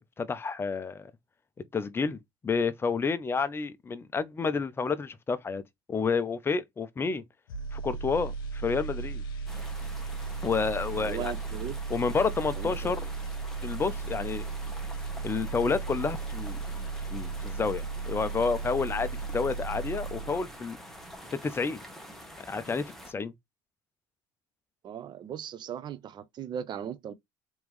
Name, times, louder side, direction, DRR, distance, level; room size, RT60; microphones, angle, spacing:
voice 1, 0.2-1.1 1.7-5.6 5.9-7.2 7.7-9.2 10.4-11.3 11.9-13.0 13.6-14.5 15.2-20.8 21.3-21.8 22.5-23.3, left 5 dB, 20° left, 0.6 m, -30 dB
sound 1, 7.5-20.6 20.9-21.2, right 4 dB, 90° left, 0.8 m, -36 dB
sound 2, 9.5-23.1, equal, 5° left, 1.3 m, -47 dB
voice 2, 11.0-11.8 12.6-13.0 24.8-27.1, right 9 dB, 40° right, 0.7 m, -38 dB
3.5 x 3.1 x 3.1 m
supercardioid pair, 90°, 11 cm